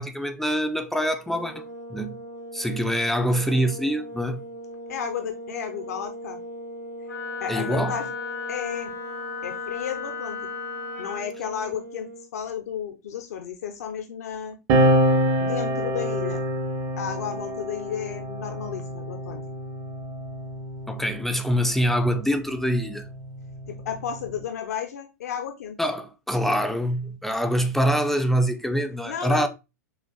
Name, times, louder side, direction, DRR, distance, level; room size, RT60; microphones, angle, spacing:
voice 1, 0.0-1.6 1.9-2.2 2.5-4.4 7.5-8.0 20.9-23.1 25.8-29.5, equal, 5° left, 0.4 m, -25 dB
sound 1, 1.3-12.3, right 1 dB, 85° right, 0.7 m, -39 dB
voice 2, 4.9-6.4 7.4-8.1 8.5-8.9 9.4-10.4 11.0-14.6 15.4-16.4 17.0-19.4 23.7-25.8 29.0-29.5, left 8 dB, 65° left, 0.6 m, -33 dB
Wind instrument woodwind instrument, 7.1-11.3, left 6 dB, 85° left, 1.3 m, -35 dB
sound 2, 14.7-21.6 22.6-24.4, equal, 40° right, 0.9 m, -26 dB
6.3 x 2.5 x 2.2 m
figure-of-eight pair, 100°, 9 cm